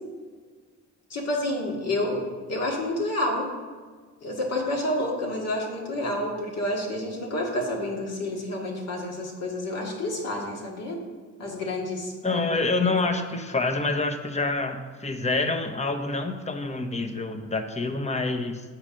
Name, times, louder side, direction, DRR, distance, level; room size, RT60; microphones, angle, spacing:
voice 1, 1.1-2.2 2.5-3.5 4.2-11.0 11.4-12.4, left 1 dB, 55° left, 0 dB, 2.0 m, -29 dB
voice 2, 12.2-18.6, left 3 dB, 20° left, 6 dB, 0.9 m, -27 dB
7.9 x 4.4 x 6.3 m, 1.5 s
cardioid pair, 90°, 30 cm